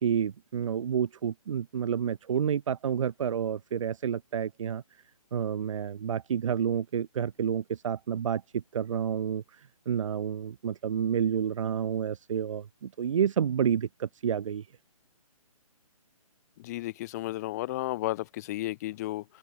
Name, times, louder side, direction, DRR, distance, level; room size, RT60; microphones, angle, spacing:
voice 1, 0.0-4.8 5.3-14.7, right 8 dB, 60° right, 0.6 m, -29 dB
voice 2, 16.6-19.2, left 17 dB, 30° left, 0.9 m, -33 dB
figure-of-eight pair, 145°, 19 cm